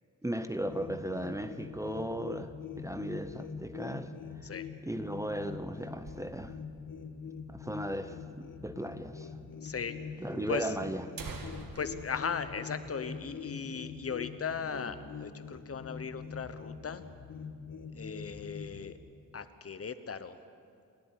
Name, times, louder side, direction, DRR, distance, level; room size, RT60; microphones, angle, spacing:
voice 1, 0.2-4.1 4.4-4.5 4.8-6.6 7.5-9.4 10.2-11.0, right 1 dB, 10° right, 9 dB, 0.8 m, -36 dB
sound 1, 0.6-18.9, left 6 dB, 70° left, 1.5 m, -44 dB
sound 2, 5.0-6.8 7.1-7.2 7.4-7.5 8.2-8.3 9.2-9.3 9.6-9.7 10.5-10.6 10.9-13.5 13.9-14.0 14.4-14.7 15.1-15.6, right 4 dB, 85° right, 2.3 m, -48 dB
voice 2, 9.6-10.0 10.5-10.7 11.7-17.0 17.9-19.0 19.3-20.4, left 5 dB, 45° left, 11 dB, 1.1 m, -37 dB
29.0 x 12.0 x 9.7 m, 2.3 s
wide cardioid pair, 130°, 33 cm